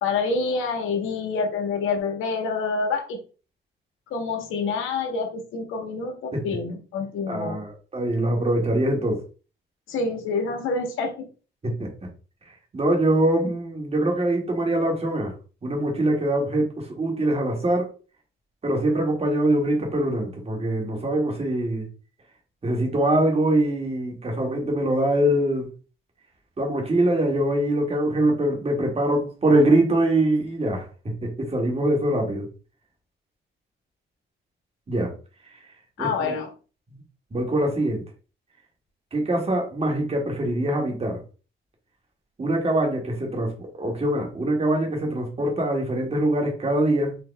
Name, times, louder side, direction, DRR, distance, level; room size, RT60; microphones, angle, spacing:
voice 1, 0.0-3.2 4.1-7.6 9.9-11.2 36.0-36.5, left 4 dB, 90° left, 3 dB, 1.4 m, -27 dB
voice 2, 7.3-9.2 11.6-12.1 12.7-15.3 15.6-17.9 18.6-21.9 22.6-25.7 26.6-32.5 34.9-35.1 36.0-36.4 37.3-38.0 39.1-41.2 42.4-47.2, right 1 dB, 30° right, 1 dB, 1.9 m, -23 dB
4.9 x 2.8 x 3.3 m, 0.35 s
cardioid pair, 90°, 20 cm